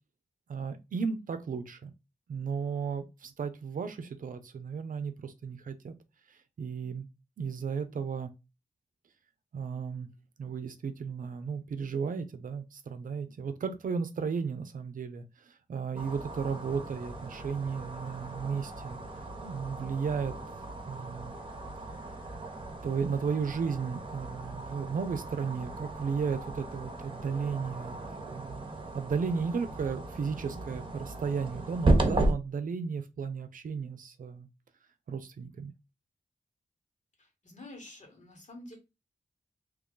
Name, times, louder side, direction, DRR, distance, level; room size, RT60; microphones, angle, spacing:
voice 1, 0.5-1.9 2.3-5.9 6.3-7.1 7.4-8.3 9.5-10.1 10.4-19.0 19.4-20.3 20.9-21.3 22.8-28.0 28.3-28.7 28.9-34.5 35.1-35.7, right 5 dB, 75° right, 0.6 m, -34 dB
sound 1, 15.9-32.3, right 2 dB, 40° right, 0.9 m, -35 dB
voice 2, 37.2-38.8, left 1 dB, 60° left, 1.8 m, -48 dB
2.9 x 2.3 x 3.8 m
cardioid pair, 45°, 14 cm